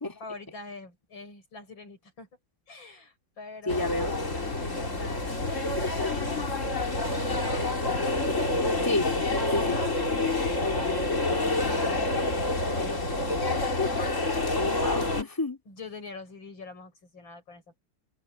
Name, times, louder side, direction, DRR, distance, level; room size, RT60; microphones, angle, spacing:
voice 1, 0.2-2.3 2.7-4.0 4.3-6.9 10.4-12.0 12.7-13.2 15.7-17.8, left 3 dB, 85° left, 7.4 m, -45 dB
sound 1, 3.7-15.2, left 2 dB, 40° left, 3.5 m, -28 dB
voice 2, 3.7-4.1 8.8-9.1 9.5-9.8 14.5-15.6, left 2 dB, 10° left, 3.1 m, -29 dB
omnidirectional pair, 2.1 m